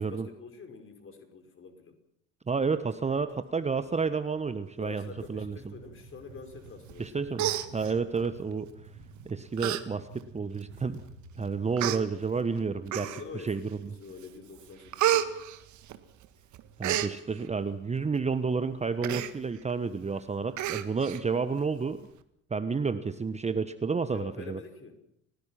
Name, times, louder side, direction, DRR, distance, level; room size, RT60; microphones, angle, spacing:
voice 1, 0.0-2.0 4.8-7.3 11.6-11.9 13.0-15.3 24.1-25.0, left 5 dB, 35° left, 5 dB, 5.6 m, -46 dB
voice 2, 2.5-5.7 7.0-8.7 9.2-11.0 11.4-13.1 13.4-13.6 16.8-22.1 22.5-24.6, right 5 dB, 15° right, 12 dB, 1.2 m, -30 dB
sound 1, 2.7-13.1, right 4 dB, 70° right, 3.8 m, -52 dB
Human voice, 6.9-7.1 7.4-8.3 9.0-9.2 9.6-9.8 10.2-10.3 11.1-11.2 11.8-12.0 12.9-13.4 13.9-14.3 14.6-16.3 16.5-17.1 19.0-19.3 19.7-19.8 20.1-20.2 20.6-21.2 21.6-21.7, right 12 dB, 50° right, 1.8 m, -30 dB
30.0 x 18.5 x 5.9 m, 0.74 s
figure-of-eight pair, 60°, 38 cm